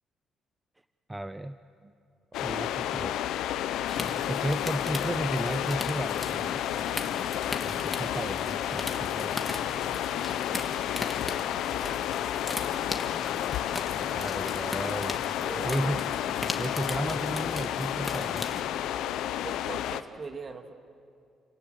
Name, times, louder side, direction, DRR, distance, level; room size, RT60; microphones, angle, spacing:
voice 1, 1.1-1.6 2.4-3.3 4.3-6.6 7.6-9.6 14.1-15.2 15.7-16.1 16.5-18.5, right 1 dB, 15° right, 11 dB, 0.6 m, -34 dB
sound 1, 2.3-20.0, left 11 dB, 85° left, 0.8 m, -31 dB
sound 2, 3.9-18.6, left 2 dB, 15° left, 2.0 m, -38 dB
voice 2, 15.4-16.0 19.4-20.7, right 4 dB, 40° right, 6 dB, 2.1 m, -41 dB
29.5 x 17.5 x 8.1 m, 2.4 s
cardioid pair, 90°, 0 cm